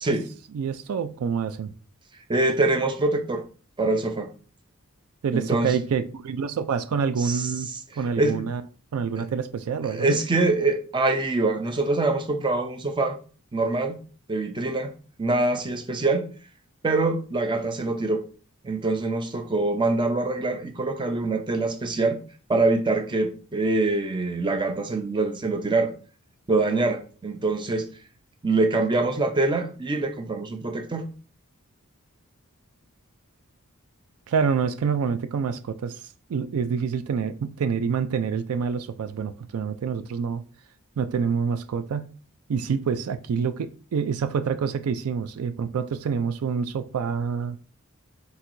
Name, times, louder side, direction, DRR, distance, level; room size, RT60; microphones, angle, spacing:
voice 1, 0.5-1.7 5.2-7.7 8.0-8.6 8.9-10.2 34.3-36.0 36.3-40.4 41.0-42.1 42.5-47.6, right 6 dB, 75° right, 0.4 m, -27 dB
voice 2, 2.3-3.4 3.8-4.3 5.3-5.7 7.2-7.5 8.2-8.4 9.8-13.2 13.5-14.0 14.3-14.9 15.2-16.2 16.8-18.2 18.6-22.2 22.5-25.9 26.5-27.9 28.4-31.1, right 2 dB, 20° right, 0.5 m, -24 dB
4.5 x 4.0 x 2.6 m
head